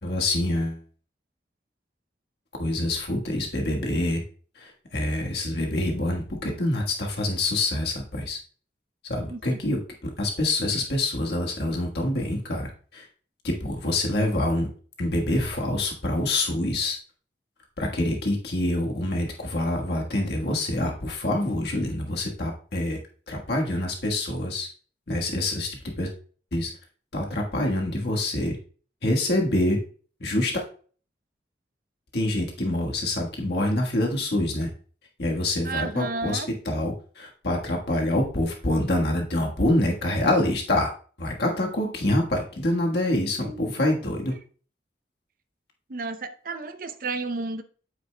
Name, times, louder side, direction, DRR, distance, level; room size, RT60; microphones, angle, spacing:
voice 1, 0.0-0.8 2.6-4.2 4.6-8.4 9.1-13.0 13.4-14.7 15.0-17.0 17.8-23.0 23.3-24.7 25.1-25.7 26.0-26.1 26.5-26.7 27.1-28.6 29.0-29.8 30.2-30.6 32.1-34.7 35.2-36.4 36.6-40.9 41.2-44.3, left 1 dB, 70° left, 1.4 m, -26 dB
voice 2, 9.3-9.6 35.6-36.5 43.4-43.7 45.9-47.6, right 3 dB, 50° right, 0.6 m, -32 dB
9.0 x 8.1 x 2.2 m
head